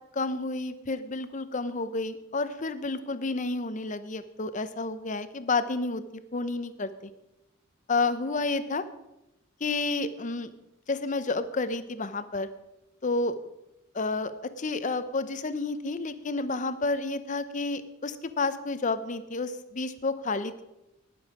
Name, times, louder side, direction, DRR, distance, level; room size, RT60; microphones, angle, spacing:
voice 1, 0.1-6.0 6.3-6.9 7.9-8.8 9.6-10.5 10.9-12.5 13.0-13.4 13.9-20.6, left 3 dB, 40° left, 12 dB, 0.7 m, -30 dB
19.0 x 7.1 x 4.9 m, 0.91 s
head